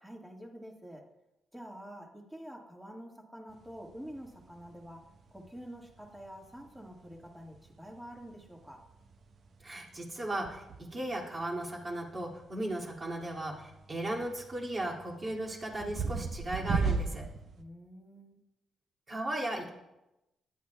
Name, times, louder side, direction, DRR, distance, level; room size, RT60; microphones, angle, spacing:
voice 1, 0.0-1.1 1.5-5.0 5.3-8.8 17.6-18.4, equal, 5° right, 0 dB, 1.7 m, -47 dB
kitchen room tone, 3.5-17.6, right 4 dB, 55° right, 0.8 m, -40 dB
voice 2, 9.6-10.6 10.9-17.2 19.1-19.7, right 1 dB, 30° right, -2 dB, 2.3 m, -36 dB
14.5 x 10.5 x 2.3 m, 0.94 s
cardioid pair, 120°, 0 cm